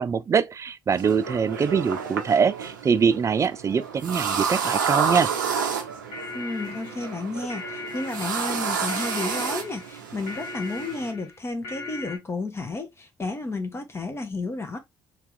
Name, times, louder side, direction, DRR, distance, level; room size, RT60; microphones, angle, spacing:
voice 1, 0.0-5.3, right 6 dB, 30° right, 0.4 m, -23 dB
sound 1, 0.9-11.1, right 6 dB, 85° right, 0.5 m, -30 dB
sound 2, 5.9-12.2, left 2 dB, 60° left, 1.0 m, -38 dB
voice 2, 6.3-14.8, left 3 dB, 25° left, 0.7 m, -32 dB
2.9 x 2.3 x 3.6 m
hypercardioid pair, 50°, 10 cm